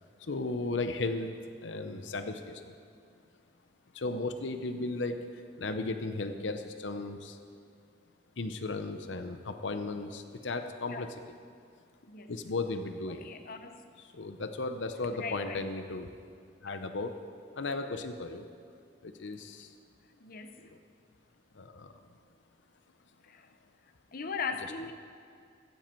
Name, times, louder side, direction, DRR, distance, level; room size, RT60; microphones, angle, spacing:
voice 1, 0.2-1.4 1.6-2.7 3.9-7.4 8.4-11.1 12.3-13.3 14.1-16.1 16.6-17.2 17.6-18.4 19.0-19.7 20.6-20.8 21.5-21.9, left 3 dB, 85° left, 8 dB, 0.8 m, -35 dB
voice 2, 13.1-13.8 15.1-15.6 20.2-20.7 23.2-23.5 24.1-24.9, left 5 dB, 55° left, 8 dB, 0.8 m, -39 dB
15.0 x 14.5 x 4.5 m, 2.3 s
head